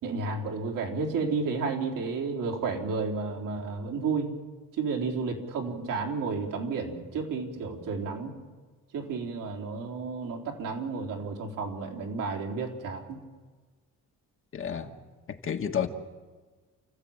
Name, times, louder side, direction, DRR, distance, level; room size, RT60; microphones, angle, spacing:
voice 1, 0.0-4.3 4.8-8.3 8.9-13.2, right 4 dB, 75° right, 0 dB, 4.1 m, -32 dB
voice 2, 14.5-14.9 15.3-15.9, left 8 dB, 40° left, 4 dB, 1.7 m, -30 dB
29.0 x 14.5 x 9.0 m, 1.4 s
cardioid pair, 135°, 32 cm